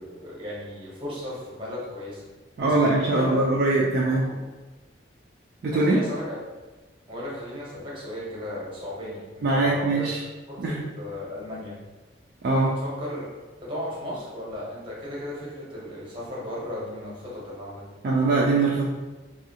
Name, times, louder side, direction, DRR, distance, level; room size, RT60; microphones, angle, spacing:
voice 1, 0.0-2.2 2.6-3.5 3.8-4.4 5.7-6.4 7.1-11.8 12.6-13.3 13.6-17.8, left 1 dB, 30° right, -6 dB, 0.8 m, -36 dB
voice 2, 2.6-4.2 5.6-6.0 9.4-10.2 10.6-10.8 12.4-12.7 18.0-18.8, right 2 dB, 55° right, -4 dB, 0.3 m, -22 dB
2.6 x 2.4 x 2.7 m, 1.2 s
head